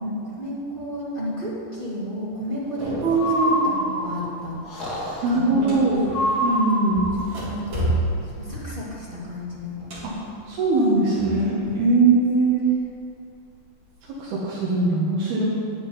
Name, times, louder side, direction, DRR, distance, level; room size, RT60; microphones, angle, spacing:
voice 1, 0.0-3.0 3.4-4.6 5.3-5.8 6.5-6.6 7.4-7.9 8.2-9.9 11.6-11.8, equal, 45° right, -8 dB, 0.6 m, -32 dB
sound 1, 2.8-3.4 3.8-4.2 4.5-6.4 6.9-11.6 11.9-12.9 13.5-14.3, right 1 dB, 30° right, 3.8 m, -31 dB
voice 2, 3.0-3.7 5.2-6.1 6.4-7.1 10.0-10.1 10.5-12.7 14.1-15.4, right 3 dB, 65° right, -6 dB, 3.5 m, -21 dB
Breathing, 3.1-4.2 4.7-5.4 6.1-7.1, left 1 dB, 30° left, 2.1 m, -26 dB
11.0 x 7.5 x 9.6 m, 2.5 s
omnidirectional pair, 5.1 m